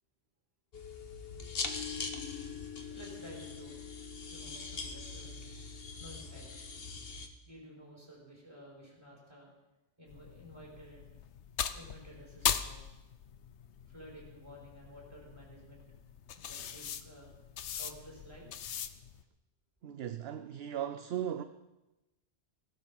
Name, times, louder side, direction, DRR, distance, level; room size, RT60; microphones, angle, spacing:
sound 1, 0.7-7.3, left 5 dB, 60° left, 1.4 m, -41 dB
voice 1, 2.9-3.8 4.3-5.4 6.0-6.5 7.4-9.5 10.0-11.2 11.7-12.8 13.9-15.9 16.3-17.3 17.8-18.5, equal, 25° right, 4.8 m, -52 dB
sound 2, 10.1-19.2, left 9 dB, 80° left, 1.0 m, -40 dB
voice 2, 19.8-21.4, right 10 dB, 65° right, 0.8 m, -37 dB
16.5 x 12.0 x 5.4 m
omnidirectional pair, 1.2 m